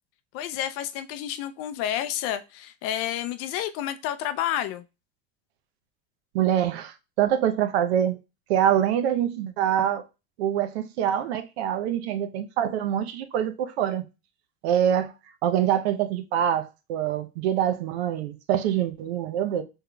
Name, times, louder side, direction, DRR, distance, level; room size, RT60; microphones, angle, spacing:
voice 1, 0.3-4.8, left 11 dB, 45° left, 0.5 m, -30 dB
voice 2, 6.3-8.2 8.5-10.0 10.4-14.0 14.6-15.1 15.4-19.6, right 10 dB, 75° right, 0.7 m, -25 dB
5.6 x 3.6 x 2.2 m
supercardioid pair, 130°, 32 cm